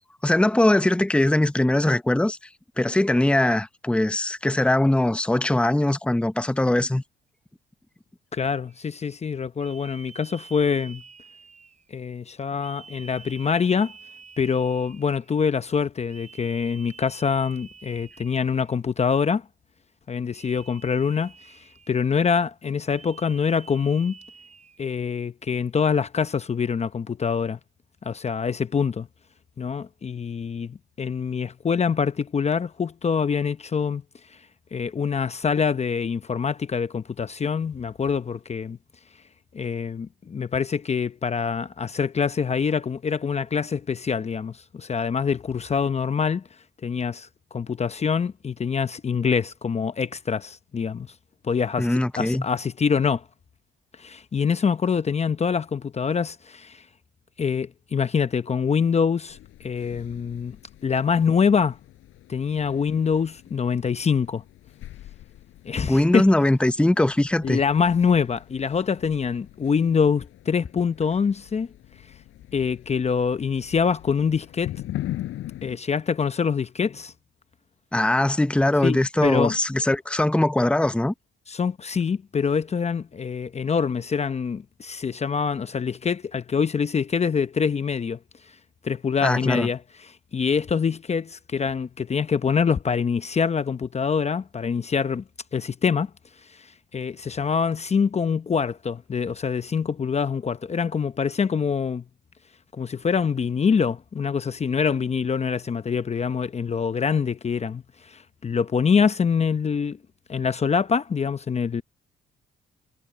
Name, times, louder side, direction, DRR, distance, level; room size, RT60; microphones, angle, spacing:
voice 1, 0.2-2.4 2.8-7.0 51.8-52.4 65.8-67.6 77.9-81.1 89.2-89.7, left 1 dB, 5° left, 0.9 m, -21 dB
voice 2, 8.3-11.0 11.9-13.9 14.4-19.4 20.1-21.6 21.9-24.2 24.8-27.6 28.0-29.1 29.6-34.0 34.7-38.8 39.5-46.4 46.8-51.1 51.4-53.2 54.0-56.8 57.4-60.6 60.8-61.8 62.3-64.4 65.6-66.3 67.4-71.7 72.5-74.7 75.6-77.1 78.8-79.6 81.5-88.2 88.8-95.2 95.5-96.1 96.5-102.0 102.7-110.0 110.3-111.8, left 6 dB, 35° left, 0.8 m, -25 dB
sound 1, 8.7-8.9 9.6-12.0 12.6-15.3 16.1-18.9 20.3-22.2 22.9-25.0, right 5 dB, 35° right, 7.2 m, -48 dB
sound 2, 59.3-75.8, left 14 dB, 85° left, 6.0 m, -41 dB
cardioid pair, 90°, 20 cm